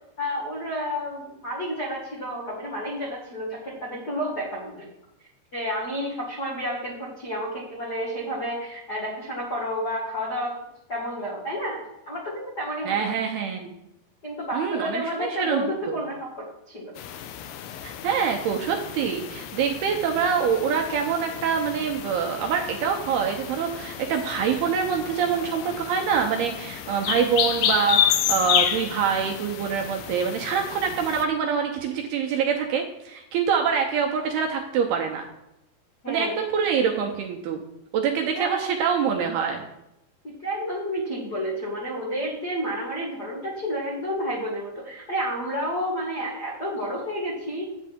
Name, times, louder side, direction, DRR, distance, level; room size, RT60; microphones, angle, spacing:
voice 1, 0.2-4.9 5.5-10.6 10.9-13.1 14.2-16.9 36.0-36.4 38.3-38.6 40.4-47.6, equal, 60° left, -4 dB, 1.0 m, -30 dB
voice 2, 12.9-13.7 14.5-16.0 17.8-35.3 36.1-37.6 37.9-39.6, right 6 dB, 80° right, 2 dB, 2.4 m, -25 dB
sound 1, 17.0-31.2, left 10 dB, 80° left, 2.5 m, -30 dB
11.0 x 8.5 x 3.6 m, 0.87 s
omnidirectional pair, 5.3 m